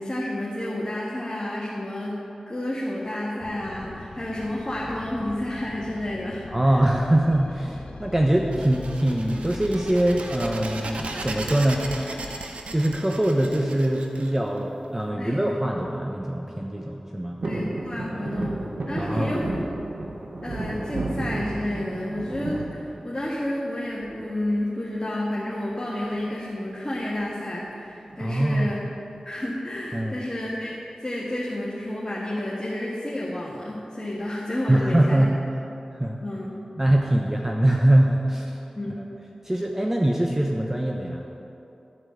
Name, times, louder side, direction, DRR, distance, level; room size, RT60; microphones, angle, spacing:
voice 1, 0.0-6.8 15.2-15.4 17.4-19.6 20.4-28.8 29.3-30.7 31.0-35.2 36.2-36.6 38.8-39.1, left 1 dB, 30° left, -6 dB, 1.7 m, -30 dB
sound 1, 3.4-12.5, left 3 dB, 75° left, 0.7 m, -41 dB
voice 2, 6.5-11.9 12.7-17.4 18.1-18.2 19.0-19.3 28.2-28.7 29.9-30.2 34.7-35.4 35.9-36.2 36.8-38.6 39.4-41.2, right 1 dB, 20° right, 0 dB, 0.9 m, -23 dB
sound 2, 8.5-15.0, right 3 dB, 90° right, 0.7 m, -37 dB
sound 3, 17.4-23.6 24.0-24.6 25.9-26.3 26.6-26.7 26.9-27.3 28.1-29.0 29.5-29.6, right 2 dB, 65° right, 1.0 m, -32 dB
12.0 x 4.8 x 7.8 m, 2.9 s
cardioid pair, 40°, 2 cm